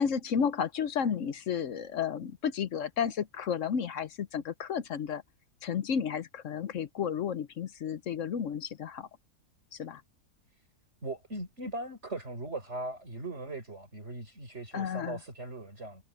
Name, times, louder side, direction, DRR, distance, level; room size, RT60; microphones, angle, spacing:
voice 1, 0.0-5.2 5.6-9.1 9.7-10.0 14.7-15.2, left 7 dB, 60° left, 1.0 m, -32 dB
voice 2, 11.0-16.0, right 2 dB, 45° right, 5.9 m, -39 dB
omnidirectional pair, 1.7 m